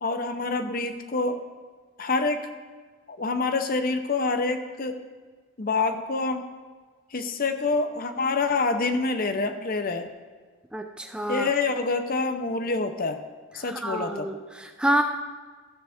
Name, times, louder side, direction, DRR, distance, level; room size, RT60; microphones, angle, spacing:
voice 1, 0.0-1.4 2.0-2.5 3.1-5.0 5.6-6.5 7.1-10.1 11.3-13.2 13.5-14.3, left 3 dB, 40° left, 8 dB, 0.7 m, -26 dB
voice 2, 10.7-11.5 13.6-15.0, right 1 dB, 5° right, 4 dB, 0.4 m, -28 dB
14.0 x 7.4 x 3.5 m, 1.4 s
head